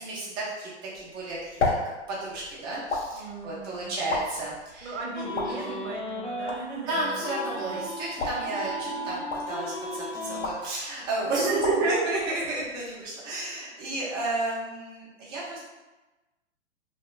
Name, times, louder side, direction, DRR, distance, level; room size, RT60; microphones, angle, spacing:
voice 1, 0.0-1.7 2.1-4.9 5.5-5.8 6.9-15.6, right 2 dB, 15° right, -7 dB, 0.4 m, -31 dB
sound 1, 0.9-13.1, left 3 dB, 80° left, 0.7 m, -36 dB
voice 2, 3.1-4.3 4.8-7.1 8.8-9.2 11.2-11.8 13.3-13.5 13.9-14.0, right 3 dB, 65° right, -1 dB, 0.7 m, -39 dB
sound 2, 5.1-6.5 6.9-10.5, equal, 40° left, 0.9 m, -35 dB
2.7 x 2.1 x 2.2 m, 1.1 s
hypercardioid pair, 125°, 35 cm